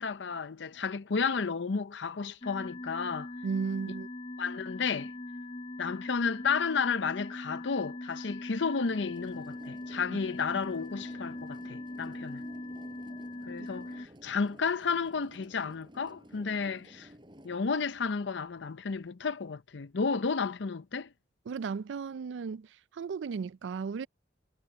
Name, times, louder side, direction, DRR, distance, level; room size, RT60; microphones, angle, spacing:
voice 1, 0.0-3.3 4.4-5.1 5.8-12.4 13.5-17.1 17.4-21.1, left 5 dB, 75° left, 0.7 m, -32 dB
sound 1, 2.4-14.1, left 2 dB, 30° left, 0.6 m, -41 dB
voice 2, 3.4-4.1 10.1-10.2 21.5-22.7 22.9-24.1, right 5 dB, 75° right, 0.4 m, -35 dB
sound 2, 8.9-17.6, equal, 25° right, 7.0 m, -53 dB
head